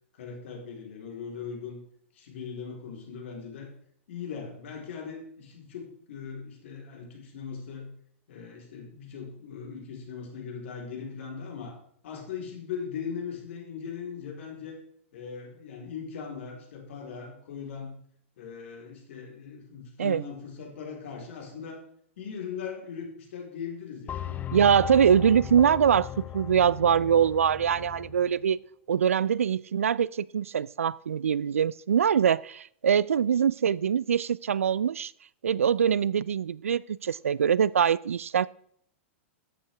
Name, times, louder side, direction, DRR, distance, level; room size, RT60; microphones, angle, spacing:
voice 1, 0.1-1.8 2.1-3.7 4.1-7.9 8.3-11.8 12.0-14.8 15.1-18.0 18.4-21.8 22.2-24.5, left 6 dB, 65° left, 3.7 m, -39 dB
sound 1, 24.1-28.3, left 11 dB, 25° left, 0.6 m, -37 dB
voice 2, 24.5-26.1 26.3-28.6 28.9-35.1 35.4-38.5, right 8 dB, 85° right, 0.3 m, -23 dB
13.5 x 9.1 x 3.4 m
hypercardioid pair, 105°, 7 cm